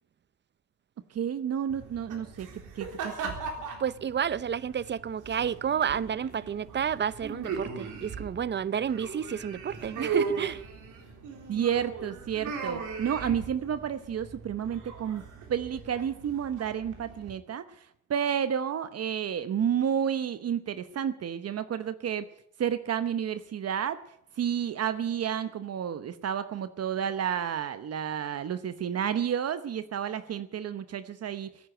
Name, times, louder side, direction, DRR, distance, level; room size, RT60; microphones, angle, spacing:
voice 1, 1.1-2.5 2.8-3.3 11.5-15.2 15.5-22.3 22.6-24.0 24.4-31.7, right 8 dB, 55° right, 1.0 m, -31 dB
sound 1, 1.7-17.3, right 5 dB, 85° right, 3.7 m, -38 dB
voice 2, 3.8-10.6, right 8 dB, 35° right, 0.7 m, -30 dB
16.5 x 9.5 x 9.1 m
cardioid pair, 90°, 30 cm